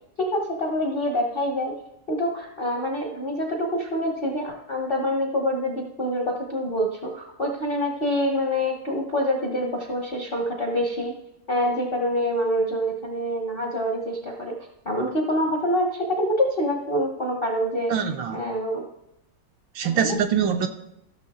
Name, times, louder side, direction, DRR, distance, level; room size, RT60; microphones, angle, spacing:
voice 1, 0.2-1.8 2.1-11.2 11.5-14.6 14.8-17.9 18.3-18.9 19.8-20.2, equal, 50° left, 0.7 m, -26 dB
voice 2, 17.9-18.4 19.7-20.7, right 7 dB, 75° right, 1.2 m, -24 dB
14.5 x 6.5 x 3.6 m
omnidirectional pair, 2.3 m